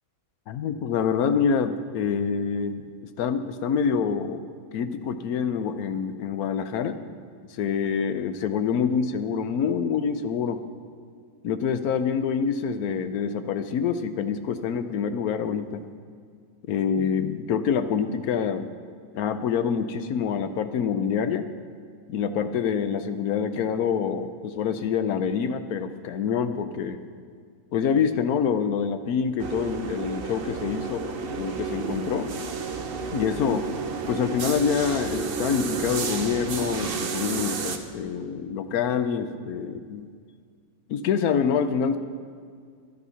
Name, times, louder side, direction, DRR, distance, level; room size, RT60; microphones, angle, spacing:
voice 1, 0.5-2.9 3.2-4.4 4.7-7.0 7.5-10.6 11.4-15.8 16.7-18.7 19.1-21.5 22.1-27.0 27.7-31.0 31.4-32.3 33.1-33.7 34.1-40.1 40.9-42.0, left 7 dB, 85° left, 10 dB, 1.2 m, -26 dB
sound 1, 29.4-37.8, right 4 dB, 50° right, 0.8 m, -31 dB
11.0 x 11.0 x 5.7 m, 2.1 s
omnidirectional pair, 1.5 m